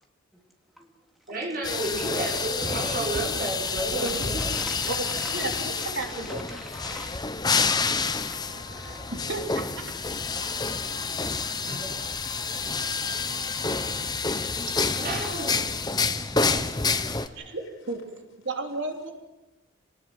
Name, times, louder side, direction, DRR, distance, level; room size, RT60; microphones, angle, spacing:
voice 1, 1.3-4.4 11.7-11.9 14.9-15.7 15.9-16.1 16.9-17.5, right 2 dB, 45° right, -1 dB, 5.5 m, -32 dB
sound 1, 1.6-17.3, left 4 dB, 20° left, 0.8 m, -28 dB
sound 2, 2.3-11.4, left 1 dB, 65° left, 5.2 m, -51 dB
voice 2, 4.0-5.5 5.8-5.9 6.3-7.2 7.6-7.7 8.8-9.0 10.8-11.1 14.9-15.6, equal, ahead, 1 dB, 2.8 m, -44 dB
voice 3, 4.9-6.4 9.1-9.9 17.5-18.0 18.4-19.1, right 2 dB, 60° right, 3 dB, 3.2 m, -33 dB
voice 4, 7.5-9.3 9.8-14.4 17.4-18.0, left 3 dB, 80° left, 2 dB, 5.6 m, -50 dB
26.5 x 19.0 x 7.7 m, 1.1 s
head